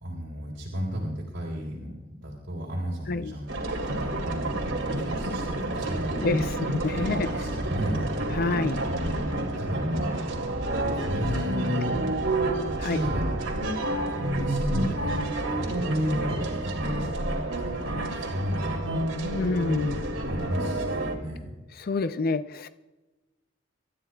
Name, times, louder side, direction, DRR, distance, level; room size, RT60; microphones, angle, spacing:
voice 1, 0.0-6.5 6.9-8.1 8.9-10.3 10.9-11.9 12.6-13.3 14.1-19.1 19.5-19.9 20.3-21.5, equal, 65° right, -4 dB, 3.6 m, -33 dB
sound 1, 3.5-21.2, right 1 dB, 85° right, 2.5 m, -29 dB
voice 2, 6.1-7.3 8.3-8.8 12.8-13.0 19.3-20.1 21.8-22.7, left 3 dB, 50° left, 12 dB, 0.5 m, -28 dB
27.0 x 13.0 x 2.3 m, 1.1 s
head